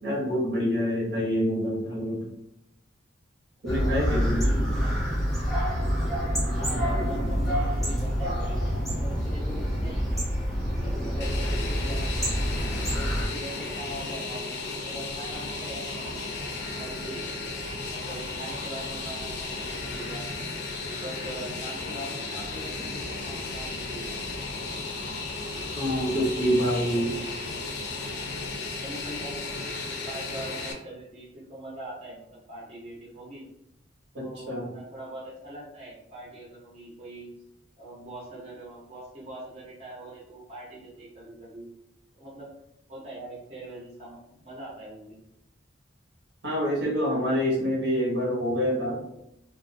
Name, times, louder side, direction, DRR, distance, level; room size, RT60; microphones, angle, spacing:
voice 1, 0.0-2.2 3.6-4.5 25.7-27.1 34.1-34.7 46.4-49.0, equal, 70° right, -3 dB, 0.9 m, -26 dB
voice 2, 3.6-4.2 4.8-5.1 6.5-10.2 10.7-12.4 12.9-14.5 14.8-16.5 16.8-17.2 17.9-20.3 21.0-24.2 26.9-27.5 28.8-33.5 34.2-37.3 37.8-41.7 42.1-42.5 42.9-45.2, right 1 dB, 35° right, -6 dB, 0.6 m, -42 dB
sound 1, 3.7-13.3, equal, ahead, 0.8 m, -27 dB
Fixed-wing aircraft airplane, 11.2-30.7, left 3 dB, 60° left, 0.5 m, -34 dB
2.3 x 2.1 x 2.6 m, 0.83 s
head